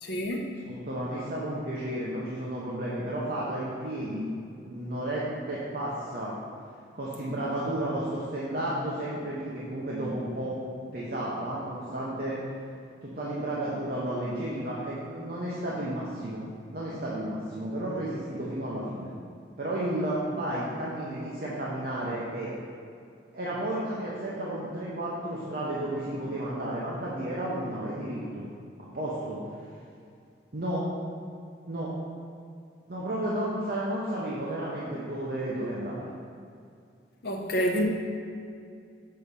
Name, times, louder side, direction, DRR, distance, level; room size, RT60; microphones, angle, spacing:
voice 1, 0.0-0.5 37.2-37.8, equal, 55° left, 0 dB, 0.8 m, -28 dB
voice 2, 0.6-4.3 4.6-6.3 6.9-10.6 10.9-12.4 13.0-16.5 16.7-19.1 19.6-22.5 23.3-28.4 28.8-29.4 30.5-30.8 31.6-31.9 32.9-36.1, right 1 dB, 50° right, -7 dB, 0.9 m, -32 dB
6.6 x 4.2 x 5.2 m, 2.4 s
head